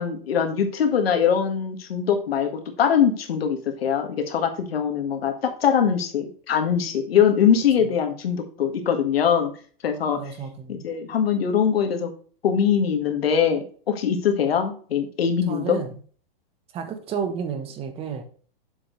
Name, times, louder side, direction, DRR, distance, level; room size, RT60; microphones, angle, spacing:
voice 1, 0.0-9.5 9.8-10.2 10.7-12.1 12.4-15.8, left 7 dB, 85° left, 5 dB, 1.8 m, -22 dB
voice 2, 9.9-10.8 15.5-15.9 16.7-18.2, right 6 dB, 20° right, 7 dB, 1.1 m, -31 dB
7.3 x 6.8 x 3.2 m, 0.43 s
hypercardioid pair, 155°, 29 cm